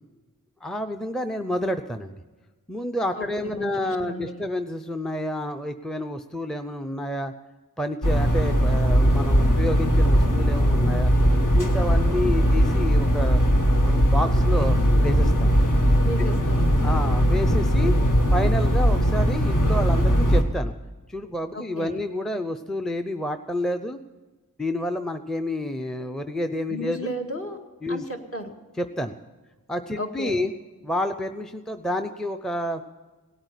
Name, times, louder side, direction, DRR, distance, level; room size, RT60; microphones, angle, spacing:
voice 1, 0.6-2.1 2.7-7.3 7.8-11.1 11.5-13.4 13.8-14.8 15.0-15.5 16.2-16.3 16.8-17.9 18.3-20.7 21.1-24.0 24.6-27.1 27.8-28.0 28.8-29.1 29.7-30.5 30.8-32.8, left 1 dB, ahead, 8 dB, 0.6 m, -29 dB
voice 2, 3.1-4.5 16.0-16.7 21.5-22.0 26.7-27.6 27.9-28.5 30.0-30.4, equal, 40° left, 2 dB, 2.1 m, -34 dB
sound 1, 8.0-20.4, equal, 60° left, 1.9 m, -19 dB
17.5 x 8.9 x 8.2 m, 1.3 s
wide cardioid pair, 60°, 34 cm